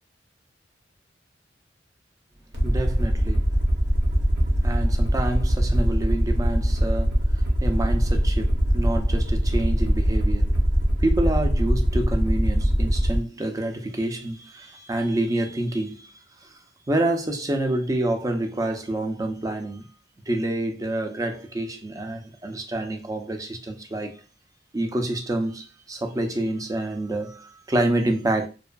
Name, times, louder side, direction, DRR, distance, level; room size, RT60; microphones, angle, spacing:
Aircraft, 2.5-13.2, equal, 65° right, 0.8 m, -22 dB
voice 1, 2.6-3.5 4.6-10.6 11.0-16.1 16.4-16.5 16.9-19.9 20.3-24.2 24.7-28.5, right 1 dB, 20° right, 0.4 m, -27 dB
2.5 x 2.3 x 2.3 m
head